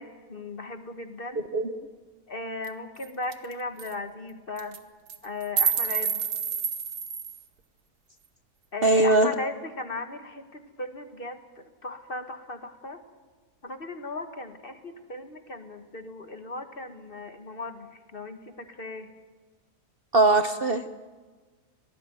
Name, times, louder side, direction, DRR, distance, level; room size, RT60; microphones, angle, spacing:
voice 1, 0.0-1.4 2.3-4.8 5.2-6.2 8.7-13.0 13.6-19.1, left 2 dB, 35° left, 7 dB, 1.8 m, -37 dB
sound 1, 2.6-2.7 3.0-3.1 3.3-3.5 3.8-3.9 4.6-4.8 5.1-7.4, right 7 dB, 90° right, 1.8 m, -28 dB
voice 2, 8.8-9.3 20.1-21.0, right 2 dB, 45° right, 9 dB, 1.0 m, -21 dB
24.0 x 18.0 x 9.3 m, 1.4 s
omnidirectional pair, 1.6 m